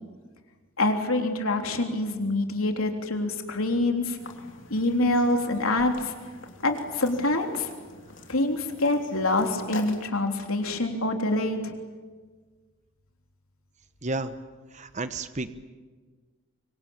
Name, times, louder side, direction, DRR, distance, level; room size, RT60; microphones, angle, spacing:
voice 1, 0.8-4.2 4.7-6.1 6.6-7.7 8.3-11.7, left 2 dB, 85° left, 4 dB, 3.6 m, -26 dB
sound 1, 4.2-10.1, left 3 dB, 65° left, 3.3 m, -44 dB
voice 2, 14.0-14.3 14.7-15.5, right 2 dB, 35° right, 11 dB, 1.1 m, -31 dB
25.5 x 24.5 x 8.9 m, 1.4 s
head